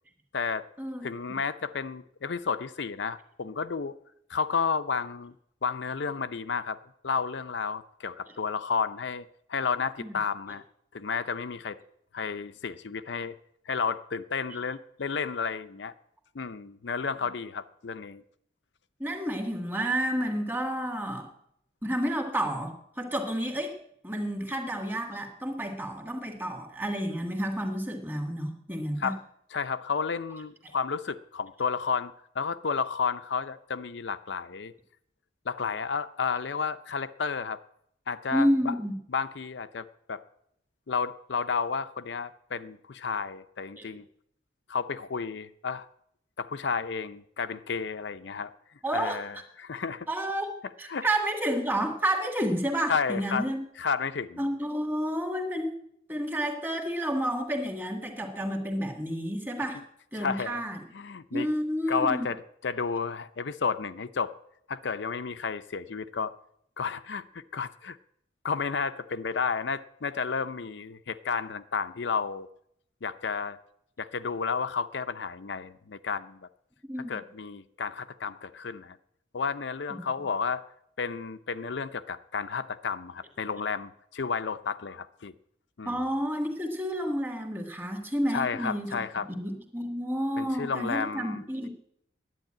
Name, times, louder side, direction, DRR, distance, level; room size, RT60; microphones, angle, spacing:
voice 1, 0.3-0.7 1.0-3.9 4.3-5.3 5.6-6.8 7.0-10.6 10.9-11.8 12.1-13.4 13.7-15.9 16.3-18.2 29.0-29.2 29.5-34.7 35.5-37.6 38.1-38.7 39.1-40.2 40.9-44.0 44.7-45.9 46.4-48.5 48.9-50.1 50.9-51.1 52.9-53.5 53.8-54.4 60.1-60.6 60.9-61.5 61.9-64.3 64.7-66.3 66.8-68.0 68.4-72.5 73.0-73.6 74.0-76.4 77.1-79.0 79.3-80.6 81.0-85.3 85.8-86.0 88.3-89.3 90.4-91.4, left 5 dB, 70° left, 12 dB, 0.6 m, -32 dB
voice 2, 19.0-21.3 21.8-23.8 24.0-29.1 38.3-38.9 43.8-43.9 48.8-49.2 50.1-50.5 50.8-53.6 54.4-55.7 56.1-59.8 60.1-60.8 61.3-62.3 76.9-77.2 79.9-80.1 85.9-89.0 89.3-91.7, equal, 10° right, 3 dB, 1.8 m, -30 dB
10.5 x 9.4 x 8.8 m, 0.72 s
head